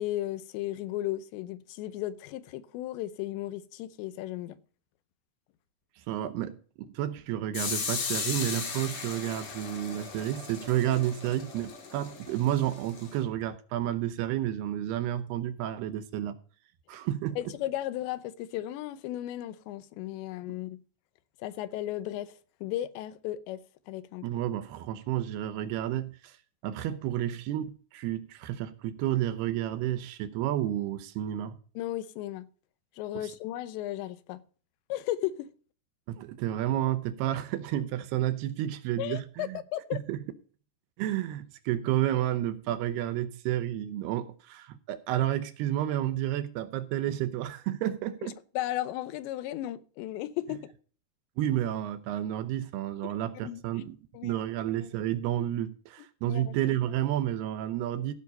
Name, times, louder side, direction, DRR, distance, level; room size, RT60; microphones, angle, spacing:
voice 1, 0.0-4.6 17.4-20.8 21.4-22.3 22.6-23.6 23.9-24.3 31.8-32.5 33.0-34.4 34.9-35.5 39.0-40.0 48.6-50.7 53.0-53.1 53.4-53.8 54.1-54.4 56.3-56.6, left 14 dB, 90° left, 3.0 m, -35 dB
voice 2, 6.0-6.6 6.9-16.4 16.9-17.4 24.2-26.4 26.6-31.6 33.1-33.3 36.1-39.6 39.9-40.2 41.0-48.3 51.4-54.0 54.2-58.1, right 12 dB, 80° right, 2.6 m, -31 dB
sound 1, 7.5-13.2, left 5 dB, 55° left, 1.6 m, -37 dB
15.5 x 6.0 x 5.3 m
omnidirectional pair, 5.0 m